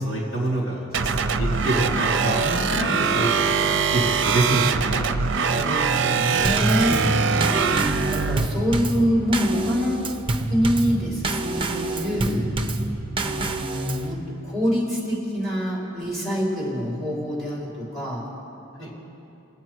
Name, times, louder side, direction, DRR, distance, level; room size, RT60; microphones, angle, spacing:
voice 1, 0.0-2.9 3.1-3.3 3.7-5.1 6.9-7.2 18.8-18.9, right 1 dB, 75° left, -4 dB, 3.7 m, -26 dB
sound 1, 0.9-8.5, right 5 dB, 65° right, 0.6 m, -22 dB
voice 2, 5.5-6.9 7.7-10.0 10.5-12.5 13.2-18.2 18.8-18.9, equal, ahead, -6 dB, 3.8 m, -26 dB
Drum kit / Snare drum / Bass drum, 6.4-14.1, right 2 dB, 25° right, 0.7 m, -27 dB
24.5 x 8.2 x 4.6 m, 2.8 s
head